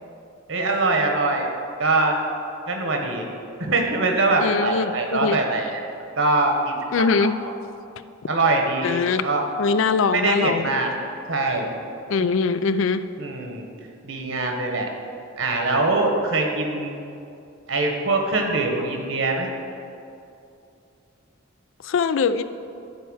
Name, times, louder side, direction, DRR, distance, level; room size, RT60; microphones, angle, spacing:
voice 1, 0.5-1.5 1.8-2.1 2.7-3.2 3.6-5.6 6.2-6.7 7.2-7.3 8.3-9.5 10.1-10.9 11.3-11.7 13.2-13.6 14.0-14.9 15.4-16.9 17.7-19.5, right 2 dB, 70° right, 2 dB, 1.4 m, -23 dB
voice 2, 4.4-5.4 6.9-7.4 8.8-9.3 9.6-10.7 12.1-13.1 21.8-22.4, left 5 dB, 65° left, 13 dB, 0.4 m, -22 dB
12.5 x 4.6 x 6.3 m, 2.6 s
head